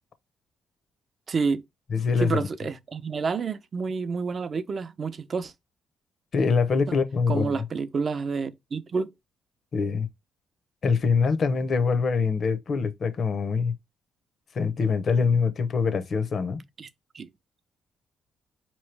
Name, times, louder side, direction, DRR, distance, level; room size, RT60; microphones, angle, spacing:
voice 1, 1.3-1.6 2.2-5.5 6.9-7.0 7.3-9.1 16.8-16.9 17.1-17.3, right 5 dB, 45° right, 0.6 m, -29 dB
voice 2, 1.9-2.5 6.3-7.6 9.7-10.1 10.8-13.8 14.5-16.6, left 5 dB, 50° left, 0.9 m, -24 dB
4.6 x 3.1 x 3.2 m
cardioid pair, 90°, 0 cm